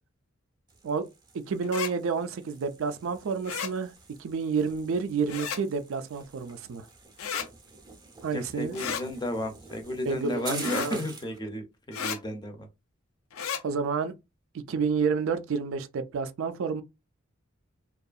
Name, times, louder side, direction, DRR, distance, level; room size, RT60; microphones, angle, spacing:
sound 1, 0.7-11.4, right 4 dB, 20° right, 0.6 m, -47 dB
voice 1, 1.5-3.9 4.2-6.9 8.2-8.8 10.0-11.0 13.6-14.1 14.7-16.8, right 5 dB, 70° right, 0.4 m, -29 dB
sound 2, 1.6-1.9 3.4-3.7 5.3-5.6 7.2-7.5 8.7-9.0 10.6-10.9 11.9-12.2 13.3-13.6, left 7 dB, 80° left, 0.4 m, -32 dB
voice 2, 8.3-12.7, left 1 dB, 20° left, 0.5 m, -33 dB
2.6 x 2.3 x 2.3 m
head